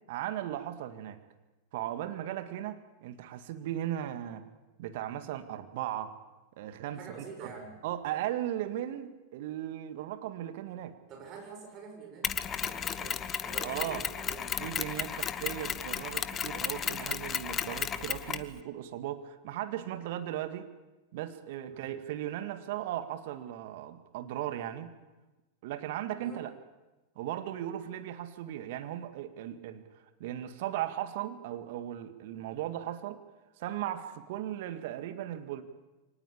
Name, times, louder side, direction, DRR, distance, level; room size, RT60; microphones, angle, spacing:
voice 1, 0.1-1.2 1.7-4.5 4.8-6.2 6.6-7.5 7.8-11.0 13.6-14.0 14.6-20.7 21.1-24.9 25.6-26.5 27.2-29.8 30.2-33.2 33.6-35.6, right 12 dB, 60° right, 9 dB, 1.9 m, -37 dB
voice 2, 6.9-7.8 11.1-14.8 21.7-21.9 26.2-26.4, right 5 dB, 40° right, 4 dB, 7.1 m, -47 dB
Mechanisms, 12.2-18.5, left 8 dB, 30° left, 1.1 m, -34 dB
24.5 x 19.0 x 8.6 m, 1.1 s
hypercardioid pair, 90°, 0 cm